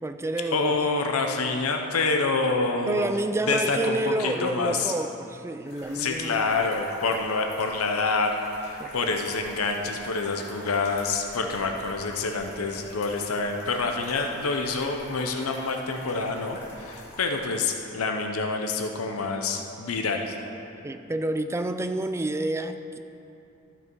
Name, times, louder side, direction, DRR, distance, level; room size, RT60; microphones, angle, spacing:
voice 1, 0.0-0.7 2.9-6.4 8.8-8.9 20.8-23.0, right 2 dB, 10° right, 8 dB, 0.3 m, -29 dB
voice 2, 0.5-3.1 3.5-4.9 5.9-8.3 8.6-20.3, left 3 dB, 70° left, 4 dB, 0.7 m, -27 dB
sound 1, 5.7-17.4, left 1 dB, 55° left, 2.2 m, -46 dB
13.0 x 5.9 x 4.6 m, 2.8 s
head